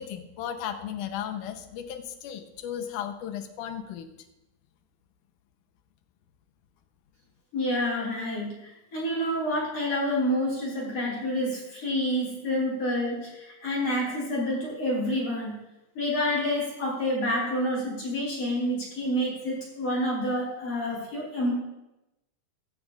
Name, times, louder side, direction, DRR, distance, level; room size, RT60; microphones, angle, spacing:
voice 1, 0.0-4.1, left 9 dB, 80° left, 6 dB, 2.4 m, -35 dB
voice 2, 7.5-15.5 15.9-21.5, equal, 50° left, -5 dB, 4.9 m, -28 dB
15.5 x 15.0 x 2.5 m, 0.93 s
omnidirectional pair, 3.7 m